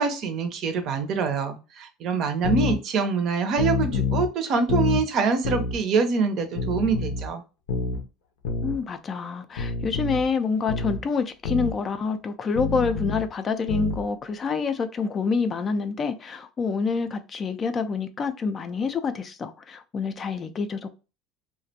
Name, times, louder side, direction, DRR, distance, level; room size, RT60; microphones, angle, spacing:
voice 1, 0.0-7.4, right 5 dB, 50° right, 0.6 m, -25 dB
sound 1, 2.4-2.8 3.6-4.3 4.7-5.0 5.4-5.8 6.6-7.3 7.7-8.0 8.5-8.8 9.6-10.3 10.7-11.0 11.5-11.7 12.6-13.3 13.7-14.0, left 5 dB, 85° left, 0.5 m, -27 dB
voice 2, 8.6-20.9, left 5 dB, 30° left, 0.3 m, -27 dB
2.3 x 2.1 x 2.7 m
supercardioid pair, 115°, 0 cm